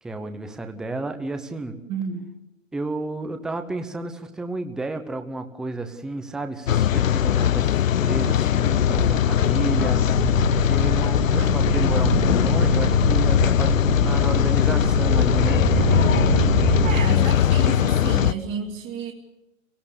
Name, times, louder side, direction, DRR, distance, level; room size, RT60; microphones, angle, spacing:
voice 1, 0.0-1.8 2.7-15.6, right 2 dB, ahead, 7 dB, 0.7 m, -31 dB
voice 2, 1.9-2.3 11.4-11.8 16.8-19.1, right 6 dB, 25° right, 0 dB, 1.9 m, -31 dB
Rain, 6.7-18.3, left 11 dB, 80° left, 0.8 m, -20 dB
sound 1, 8.1-8.3 8.6-17.1, right 10 dB, 40° right, 0.8 m, -27 dB
26.5 x 18.0 x 6.7 m, 0.95 s
hypercardioid pair, 140°, 39 cm